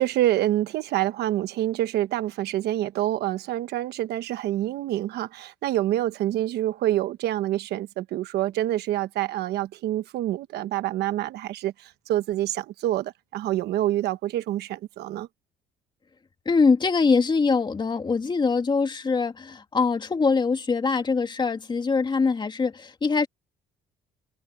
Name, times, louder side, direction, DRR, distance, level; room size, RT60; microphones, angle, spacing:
voice 1, 0.0-15.3, right 14 dB, 75° right, 1.2 m, -27 dB
voice 2, 16.4-23.3, left 4 dB, 25° left, 2.7 m, -23 dB
cardioid pair, 110°, 17 cm